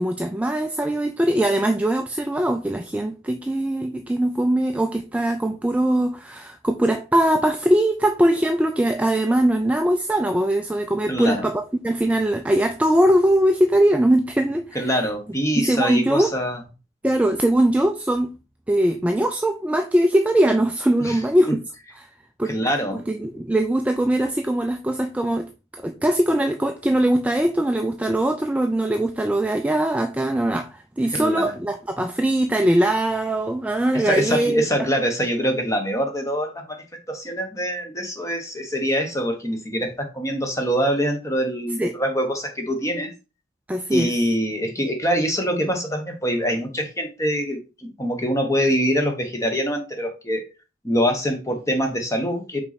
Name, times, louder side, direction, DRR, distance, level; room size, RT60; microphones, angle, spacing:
voice 1, 0.0-14.9 15.6-16.3 17.0-18.3 18.7-21.6 22.4-22.5 23.1-25.5 25.8-34.9 41.8-41.9 43.7-44.1, right 1 dB, 5° right, 0.3 m, -21 dB
voice 2, 11.1-11.5 14.7-16.6 21.0-21.5 22.4-23.0 31.1-31.5 33.9-43.1 43.9-50.5 50.8-52.6, equal, 15° left, 1.0 m, -24 dB
5.6 x 4.1 x 4.1 m
head